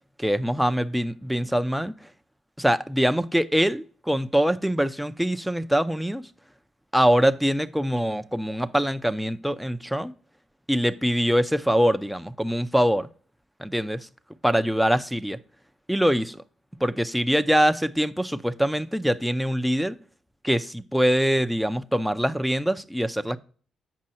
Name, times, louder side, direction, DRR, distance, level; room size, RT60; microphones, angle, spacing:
voice 1, 0.2-1.9 2.6-6.2 6.9-10.1 10.7-13.1 13.6-14.1 14.4-15.4 15.9-16.4 16.8-20.0 20.4-23.4, equal, ahead, 0.5 m, -23 dB
7.6 x 5.3 x 4.2 m
cardioid pair, 90°, 0 cm